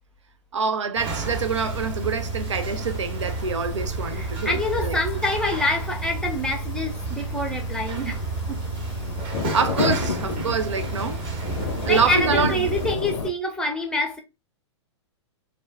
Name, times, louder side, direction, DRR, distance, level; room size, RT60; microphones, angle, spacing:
voice 1, 0.5-5.0 9.5-11.2 11.8-12.6, right 5 dB, 90° right, 0.5 m, -26 dB
sound 1, 1.0-13.0, right 3 dB, 35° right, 0.7 m, -31 dB
sound 2, 1.2-13.3, left 4 dB, 80° left, 0.5 m, -33 dB
voice 2, 4.1-8.2 8.5-8.6 11.9-14.2, left 1 dB, 5° left, 0.6 m, -26 dB
2.3 x 2.1 x 3.3 m
hypercardioid pair, 125°, 15 cm